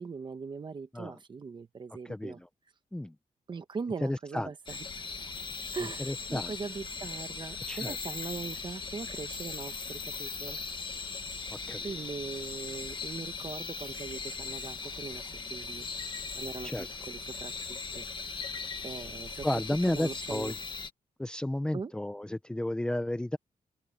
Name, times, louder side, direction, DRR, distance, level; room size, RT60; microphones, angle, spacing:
voice 1, 0.0-2.4 3.5-5.0 5.7-10.6 11.8-15.9 16.3-18.4 18.8-19.5 19.9-20.5 21.7-21.9, right 5 dB, 35° right, 1.3 m, -41 dB
voice 2, 2.0-2.5 2.9-3.2 4.0-4.5 6.0-6.5 7.7-8.0 11.5-11.9 16.6-16.9 19.4-20.5 21.2-23.4, left 1 dB, 5° left, 0.7 m, -32 dB
sound 1, 4.7-20.9, left 4 dB, 35° left, 1.5 m, -39 dB
open air
wide cardioid pair, 170°, 14 cm